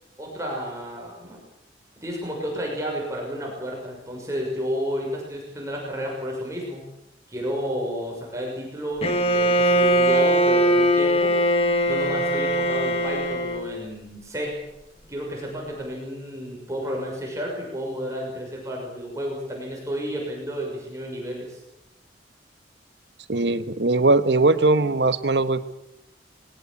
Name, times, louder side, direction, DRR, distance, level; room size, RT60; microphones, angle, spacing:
voice 1, 0.2-1.4 2.0-6.9 7.3-11.4 11.9-14.6 15.1-21.6, equal, 15° right, -1 dB, 6.3 m, -31 dB
Bowed string instrument, 9.0-13.8, right 1 dB, 35° left, 1.8 m, -21 dB
voice 2, 23.3-25.7, right 2 dB, 80° right, 12 dB, 1.3 m, -20 dB
21.0 x 18.0 x 8.5 m, 0.87 s
head